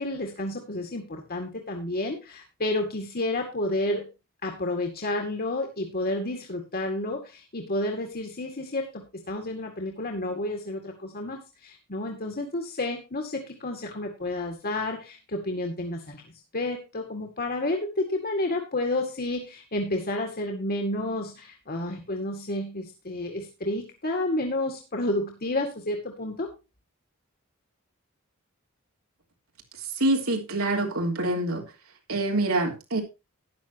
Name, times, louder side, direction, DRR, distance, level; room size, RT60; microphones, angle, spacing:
voice 1, 0.0-4.1 4.4-16.2 16.5-26.5, left 1 dB, 45° left, 2.0 m, -30 dB
voice 2, 30.0-31.7 32.1-33.0, right 2 dB, 90° right, 3.5 m, -25 dB
13.0 x 10.5 x 3.0 m
head